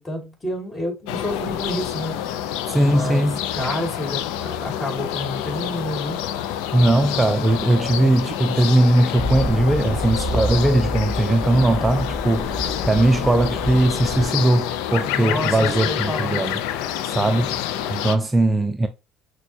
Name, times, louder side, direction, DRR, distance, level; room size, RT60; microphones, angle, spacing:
voice 1, 0.0-2.5 2.7-6.2 15.0-16.4 17.2-17.5, left 1 dB, 25° left, 2.5 m, -30 dB
sound 1, 1.1-18.2, left 11 dB, 80° left, 0.4 m, -28 dB
voice 2, 2.7-3.4 6.7-16.6 17.0-17.5 17.9-18.9, right 1 dB, 20° right, 0.4 m, -19 dB
Accelerating revving vroom, 9.2-14.3, equal, 45° left, 1.8 m, -29 dB
5.9 x 2.2 x 2.7 m
supercardioid pair, 70°, 0 cm